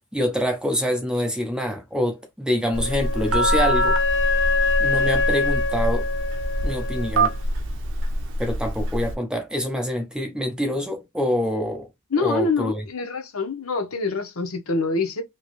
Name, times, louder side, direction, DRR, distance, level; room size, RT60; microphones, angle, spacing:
voice 1, 0.1-4.0 4.8-6.1 6.6-7.3 8.4-11.9 12.2-12.8, equal, 5° right, 0.6 m, -26 dB
Wind instrument woodwind instrument, 2.7-7.3, left 3 dB, 55° left, 0.4 m, -25 dB
Telephone, 2.7-9.1, right 1 dB, 55° right, 0.6 m, -24 dB
voice 2, 12.1-15.2, left 3 dB, 70° left, 0.8 m, -25 dB
2.9 x 2.8 x 3.0 m
head